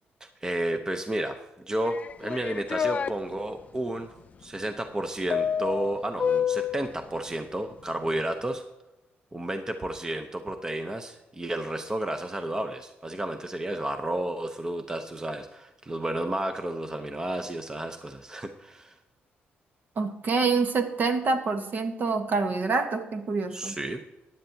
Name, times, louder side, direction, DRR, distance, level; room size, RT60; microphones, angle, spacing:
voice 1, 0.2-1.4 1.7-4.1 4.4-8.6 9.3-18.9 23.5-24.0, right 1 dB, 15° right, 7 dB, 0.8 m, -32 dB
sound 1, 1.9-3.1 5.3-6.9, left 7 dB, 35° left, 0.3 m, -28 dB
voice 2, 20.0-23.7, right 4 dB, 50° right, 7 dB, 1.3 m, -26 dB
15.0 x 10.5 x 2.8 m, 0.95 s
cardioid pair, 120°, 4 cm